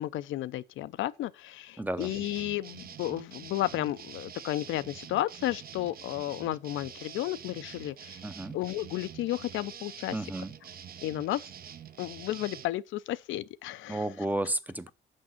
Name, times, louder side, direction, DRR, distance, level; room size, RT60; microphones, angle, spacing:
voice 1, 0.0-8.2 8.5-10.3 11.0-11.4 12.0-14.1, left 14 dB, 80° left, 0.5 m, -33 dB
voice 2, 1.8-2.1 8.2-8.6 10.1-10.5 13.9-14.9, right 1 dB, 10° right, 0.6 m, -32 dB
sound 1, 2.0-12.7, right 8 dB, 50° right, 0.6 m, -46 dB
6.3 x 5.3 x 5.7 m
cardioid pair, 90°, 20 cm